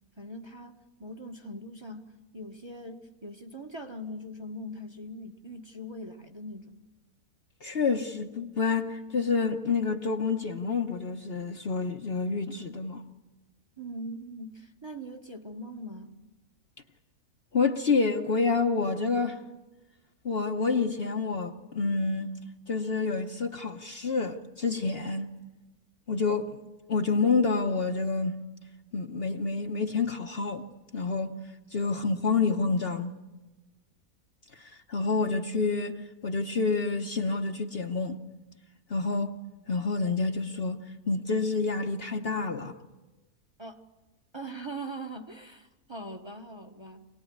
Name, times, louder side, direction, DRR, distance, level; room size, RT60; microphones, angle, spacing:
voice 1, 0.2-6.8 13.8-16.2 43.6-43.8 44.3-47.1, right 1 dB, 20° right, 1.3 m, -41 dB
voice 2, 7.6-13.0 17.5-19.4 20.2-22.3 22.7-25.3 26.1-26.5 26.9-28.4 28.9-30.6 30.9-31.4 31.7-33.1 34.5-38.2 38.9-39.4 39.7-42.8, left 4 dB, 45° left, 1.1 m, -28 dB
26.0 x 19.0 x 9.5 m
omnidirectional pair, 1.6 m